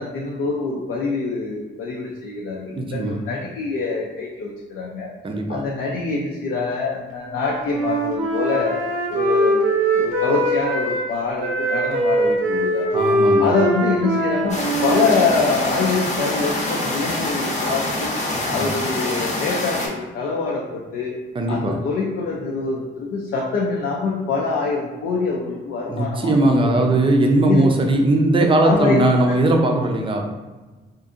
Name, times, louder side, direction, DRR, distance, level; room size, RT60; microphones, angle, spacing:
voice 1, 0.0-5.1 5.5-8.8 9.1-9.7 10.0-12.9 13.4-18.2 18.5-21.2 21.5-27.0 27.5-27.6 28.4-29.0 29.3-29.4, left 4 dB, 75° left, -3 dB, 0.5 m, -25 dB
voice 2, 2.7-3.2 5.2-5.6 12.9-13.5 21.3-21.9 25.9-30.3, right 2 dB, 25° right, 2 dB, 0.5 m, -19 dB
Wind instrument woodwind instrument, 7.3-11.1 11.4-15.9, right 1 dB, 85° right, 0.7 m, -22 dB
sound 1, 14.5-19.9, left 1 dB, 35° left, 0.7 m, -25 dB
2.6 x 2.5 x 2.5 m, 1.2 s
cardioid pair, 90°, 20 cm